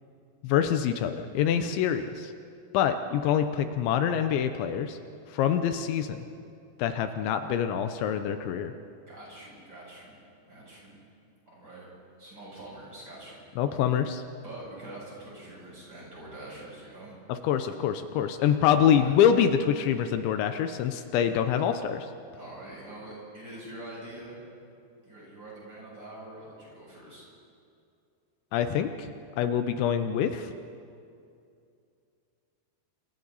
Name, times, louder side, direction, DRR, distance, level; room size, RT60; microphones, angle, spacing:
voice 1, 0.4-2.3 2.7-5.0 5.3-6.3 6.8-8.7 13.6-14.2 17.3-22.1 28.5-29.1 29.4-30.5, left 9 dB, 80° left, 8 dB, 3.1 m, -25 dB
voice 2, 9.1-10.2 10.5-11.0 11.4-11.9 12.2-13.4 14.4-17.1 18.8-19.2 22.3-24.4 25.0-27.2, right 1 dB, 25° right, -5 dB, 8.3 m, -44 dB
30.0 x 26.5 x 4.1 m, 2.5 s
omnidirectional pair, 5.3 m